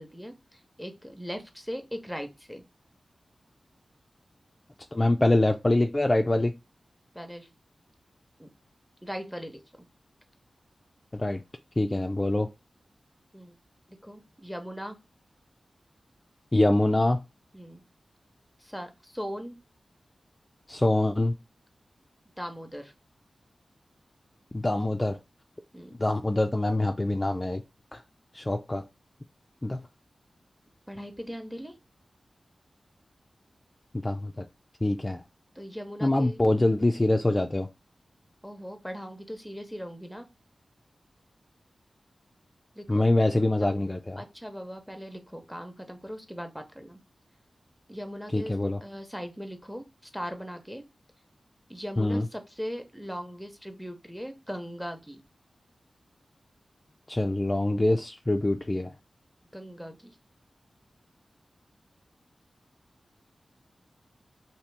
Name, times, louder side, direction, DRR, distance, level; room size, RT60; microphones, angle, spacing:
voice 1, 0.0-2.6 7.1-7.5 8.4-8.5 9.0-9.9 13.3-13.6 13.9-15.0 17.5-17.8 18.6-19.6 22.4-22.9 25.7-25.9 30.9-31.8 35.5-36.4 38.4-40.3 42.7-43.1 43.6-43.8 44.2-47.0 47.9-48.6 48.8-50.8 51.7-55.2 59.5-60.2, equal, ahead, 0.8 m, -39 dB
voice 2, 4.9-6.5 11.1-11.4 11.8-12.5 16.5-17.2 20.7-21.3 24.5-25.2 26.0-27.6 27.9-28.0 28.3-28.8 29.6-29.8 34.0-34.4 34.8-35.2 36.0-37.7 42.9-44.2 48.3-48.8 52.0-52.3 57.1-58.9, left 2 dB, 25° left, 0.3 m, -24 dB
2.8 x 2.7 x 3.3 m
cardioid pair, 50°, 0 cm